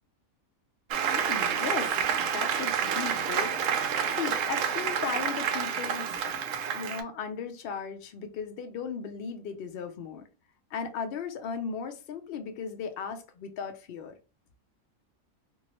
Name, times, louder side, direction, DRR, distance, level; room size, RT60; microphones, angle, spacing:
Applause, 0.9-7.0, right 8 dB, 70° right, 0.8 m, -29 dB
voice 1, 1.1-6.3 6.7-10.3 10.7-14.1, left 6 dB, 90° left, 0.5 m, -37 dB
3.0 x 2.6 x 2.8 m
omnidirectional pair, 1.6 m